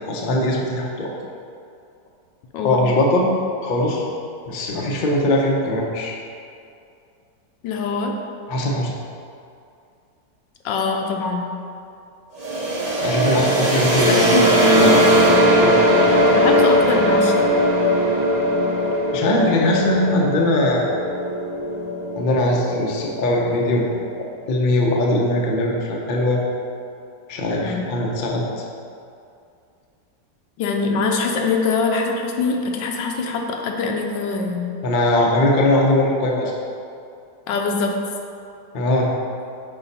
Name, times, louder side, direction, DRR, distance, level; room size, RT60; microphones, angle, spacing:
voice 1, 0.1-1.1 2.6-3.3 3.6-4.0 4.5-6.2 8.5-8.9 13.0-16.0 19.1-20.9 22.2-23.9 24.5-26.4 27.3-28.4 34.8-36.5 38.7-39.1, left 1 dB, 60° left, -1 dB, 0.5 m, -20 dB
voice 2, 7.6-8.1 10.6-11.5 14.1-14.9 16.1-17.5 27.6-27.9 30.6-34.7 37.5-37.9, left 4 dB, 80° left, 2 dB, 1.3 m, -23 dB
sound 1, 12.4-24.1, equal, 85° right, 0.3 m, -19 dB
5.6 x 4.6 x 4.1 m, 2.5 s
omnidirectional pair, 2.0 m